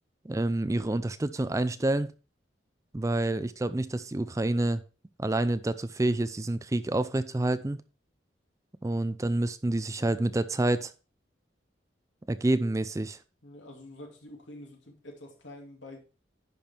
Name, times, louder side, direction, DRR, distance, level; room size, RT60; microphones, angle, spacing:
voice 1, 0.2-2.1 2.9-4.8 5.2-7.8 8.8-10.9 12.3-13.2, right 2 dB, 15° right, 0.4 m, -28 dB
voice 2, 13.4-16.0, left 1 dB, 85° left, 2.6 m, -47 dB
10.5 x 5.3 x 4.4 m
head